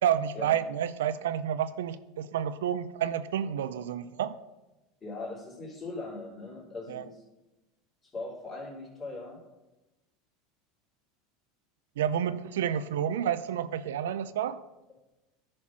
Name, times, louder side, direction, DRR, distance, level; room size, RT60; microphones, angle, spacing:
voice 1, 0.0-4.4 6.9-7.1 12.0-14.6, right 9 dB, 85° right, 14 dB, 0.4 m, -30 dB
voice 2, 5.0-7.2 8.1-9.4, left 2 dB, 25° left, -3 dB, 3.6 m, -40 dB
11.0 x 4.4 x 6.1 m, 1.0 s
hypercardioid pair, 100°, 0 cm